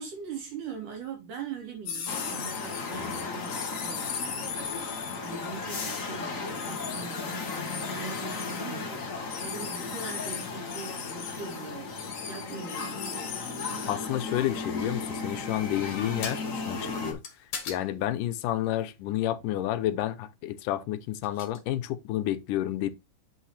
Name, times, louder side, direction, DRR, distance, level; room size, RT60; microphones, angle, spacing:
voice 1, 0.0-4.7 4.9-9.0 9.4-11.9 12.2-13.9, right 5 dB, 75° right, 4.8 m, -42 dB
sound 1, 1.9-5.6 6.5-8.6 9.3-14.3 16.2-16.4 17.2-17.8 19.4-19.5 21.2-21.6, left 7 dB, 60° left, 2.5 m, -38 dB
sound 2, 2.1-17.1, left 4 dB, 40° left, 1.2 m, -35 dB
voice 2, 13.9-17.2 17.7-22.9, left 13 dB, 85° left, 2.3 m, -30 dB
8.1 x 5.6 x 3.3 m
omnidirectional pair, 3.6 m